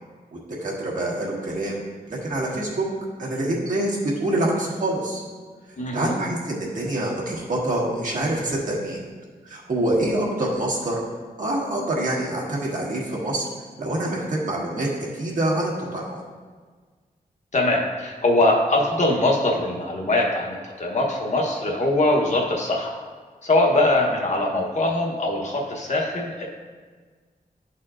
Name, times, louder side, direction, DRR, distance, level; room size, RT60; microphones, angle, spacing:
voice 1, 0.3-1.8 2.1-2.8 3.2-5.2 5.9-9.0 9.4-11.0 11.4-13.5 13.8-16.2, right 1 dB, 60° right, -4 dB, 1.5 m, -26 dB
voice 2, 5.8-6.2 17.5-23.0 23.4-26.5, left 1 dB, 50° left, -1 dB, 1.0 m, -22 dB
11.5 x 4.2 x 2.5 m, 1.5 s
wide cardioid pair, 140°, 15 cm